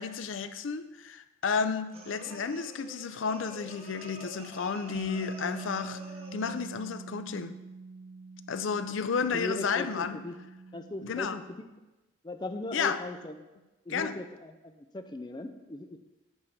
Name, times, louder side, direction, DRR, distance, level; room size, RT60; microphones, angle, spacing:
voice 1, 0.0-6.0 6.3-7.6 8.5-10.2 11.0-11.4 12.7-13.0 13.9-14.2, left 5 dB, 85° left, 11 dB, 0.5 m, -32 dB
sound 1, 1.9-6.8, right 1 dB, 30° right, 0.8 m, -48 dB
Bass guitar, 4.9-11.2, right 3 dB, 75° right, 1.3 m, -44 dB
voice 2, 9.3-10.3 10.7-11.4 12.2-13.4 13.9-16.0, left 2 dB, 20° left, 7 dB, 0.5 m, -38 dB
8.2 x 3.7 x 6.5 m, 1.1 s
head